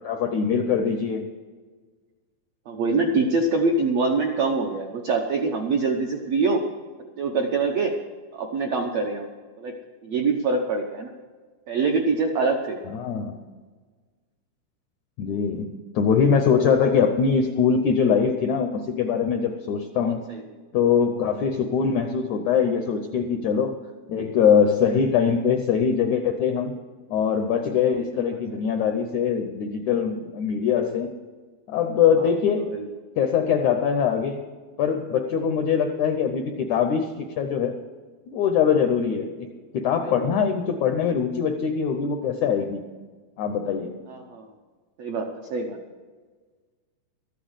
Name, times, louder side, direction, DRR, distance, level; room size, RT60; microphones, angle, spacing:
voice 1, 0.0-1.3 12.9-13.4 15.2-20.2 20.7-23.8 24.1-26.8 27.1-31.1 31.7-32.8 33.2-34.4 34.8-37.7 38.3-39.5 39.7-42.8 43.4-44.0, left 7 dB, 80° left, 5 dB, 1.7 m, -22 dB
voice 2, 2.7-6.6 7.2-7.9 8.3-9.3 9.6-9.7 10.0-11.1 11.7-12.8 20.1-20.4 28.3-28.6 32.2-32.3 32.7-32.9 40.0-40.3 44.1-44.5 45.0-45.8, right 3 dB, 75° right, 1 dB, 1.5 m, -25 dB
13.5 x 8.4 x 8.1 m, 1.4 s
omnidirectional pair, 4.3 m